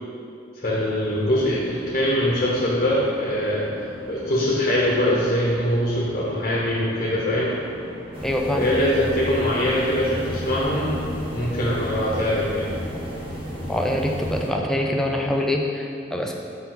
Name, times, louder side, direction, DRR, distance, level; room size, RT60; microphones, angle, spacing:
voice 1, 0.5-7.6 8.6-11.0 11.3-12.7, left 1 dB, 40° left, -5 dB, 0.9 m, -23 dB
sound 1, 0.6-15.5, equal, 55° right, 1.5 m, -41 dB
sound 2, 8.1-14.5, equal, 30° right, 1.1 m, -32 dB
voice 2, 8.2-8.7 13.7-16.3, left 1 dB, 5° left, 0 dB, 0.4 m, -24 dB
5.4 x 4.6 x 4.0 m, 2.5 s
head